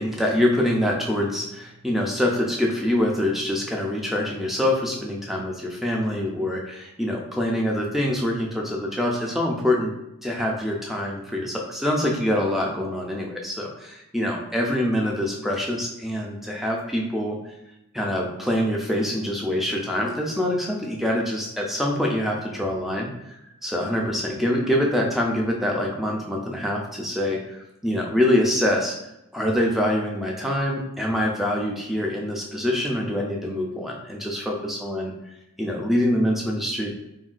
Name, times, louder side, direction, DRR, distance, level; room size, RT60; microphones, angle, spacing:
voice 1, 0.0-9.9 10.2-17.4 17.9-29.0 29.3-35.1 35.6-36.9, left 1 dB, ahead, -1 dB, 0.3 m, -25 dB
3.5 x 2.2 x 2.4 m, 0.88 s
head